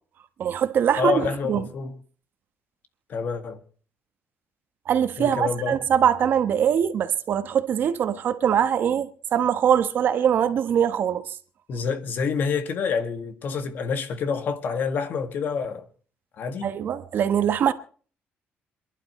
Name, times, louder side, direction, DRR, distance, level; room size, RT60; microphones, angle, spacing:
voice 1, 0.4-1.6 4.9-11.2 16.6-17.7, right 8 dB, 55° right, 1.2 m, -22 dB
voice 2, 1.0-2.0 3.1-3.6 5.2-5.8 11.7-15.9 16.4-16.7, left 5 dB, 50° left, 1.9 m, -27 dB
27.5 x 11.5 x 3.2 m
cardioid pair, 150°, 4 cm